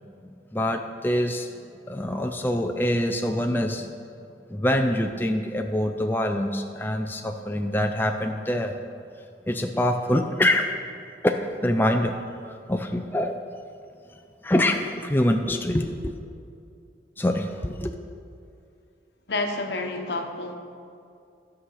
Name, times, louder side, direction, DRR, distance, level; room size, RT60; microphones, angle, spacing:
voice 1, 0.5-1.5 1.9-3.9 4.5-8.8 9.5-10.8 11.2-13.4 14.4-16.2 17.2-18.0, left 1 dB, 10° left, 4 dB, 0.4 m, -25 dB
voice 2, 19.3-20.5, left 2 dB, 70° left, 4 dB, 1.0 m, -29 dB
13.0 x 6.3 x 5.6 m, 2.5 s
head